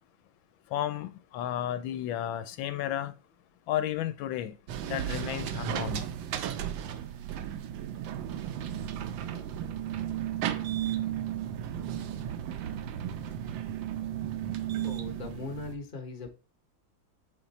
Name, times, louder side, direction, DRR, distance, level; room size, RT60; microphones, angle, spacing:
voice 1, 0.7-3.1 3.7-4.6 4.8-6.1, left 11 dB, 90° left, 1.4 m, -33 dB
sound 1, 4.7-15.7, right 10 dB, 85° right, 1.3 m, -34 dB
voice 2, 14.8-16.4, left 3 dB, 30° left, 1.0 m, -39 dB
7.1 x 3.6 x 4.1 m
omnidirectional pair, 2.1 m